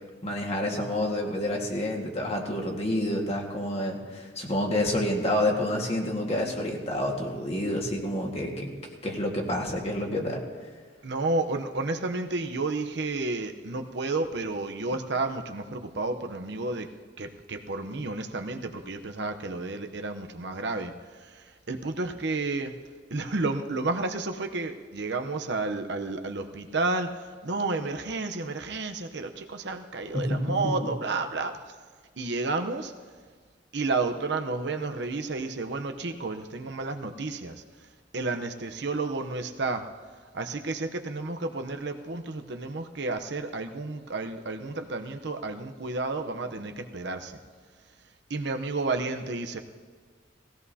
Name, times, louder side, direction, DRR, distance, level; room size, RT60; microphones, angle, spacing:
voice 1, 0.2-8.7 9.0-10.4 30.1-30.7, left 1 dB, 35° left, 0 dB, 1.7 m, -28 dB
voice 2, 11.0-16.9 17.2-20.9 21.2-22.7 23.1-27.1 27.4-31.5 32.2-32.9 33.7-37.6 38.1-39.9 40.3-47.4 48.3-49.6, right 3 dB, 65° right, 6 dB, 0.8 m, -31 dB
19.0 x 16.0 x 2.8 m, 1.6 s
head